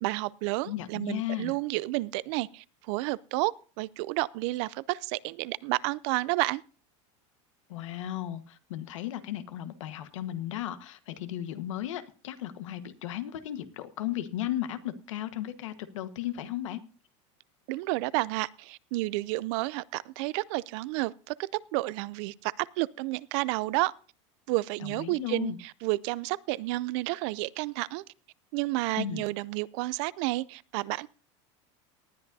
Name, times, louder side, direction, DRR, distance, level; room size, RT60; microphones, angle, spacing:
voice 1, 0.0-6.6 17.7-23.9 24.5-28.0 28.5-31.1, right 20 dB, 65° right, 0.5 m, -31 dB
voice 2, 0.6-1.5 7.7-16.8 24.8-25.6 29.0-29.2, left 12 dB, 90° left, 1.4 m, -35 dB
19.0 x 10.5 x 2.7 m
supercardioid pair, 125°, 16 cm